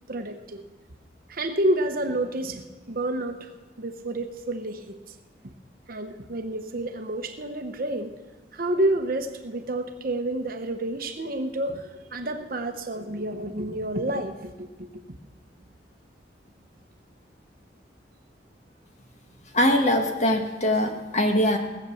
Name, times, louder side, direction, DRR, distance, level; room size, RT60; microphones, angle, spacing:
voice 1, 0.1-0.6 1.3-3.5 3.8-5.0 5.9-8.1 8.5-14.9, right 1 dB, 50° right, 6 dB, 1.0 m, -29 dB
voice 2, 19.5-21.6, left 1 dB, 40° left, 4 dB, 1.5 m, -22 dB
17.5 x 7.9 x 7.1 m, 1.2 s
head